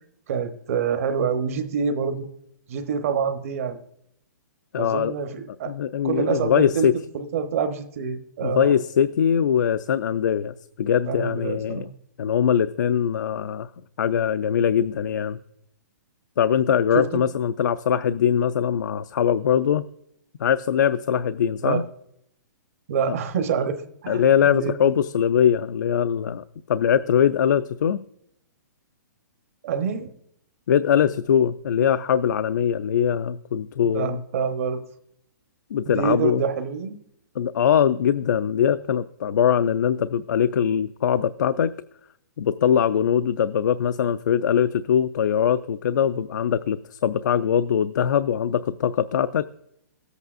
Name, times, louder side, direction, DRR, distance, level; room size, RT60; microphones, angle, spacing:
voice 1, 0.3-2.3 2.7-3.8 4.8-5.7 6.0-6.9 7.1-8.7 11.0-11.9 16.9-17.2 21.6-21.8 22.9-24.9 29.6-30.1 33.8-34.8 35.9-37.0, right 6 dB, 50° right, 8 dB, 0.9 m, -26 dB
voice 2, 4.7-5.1 5.7-6.9 8.4-11.9 12.2-13.7 14.0-15.4 16.4-19.8 20.4-21.8 24.1-28.0 30.7-34.2 35.7-36.4 37.4-41.7 42.4-49.5, left 8 dB, 75° left, 11 dB, 0.4 m, -22 dB
17.5 x 8.1 x 2.5 m, 0.77 s
hypercardioid pair, 165°, 10 cm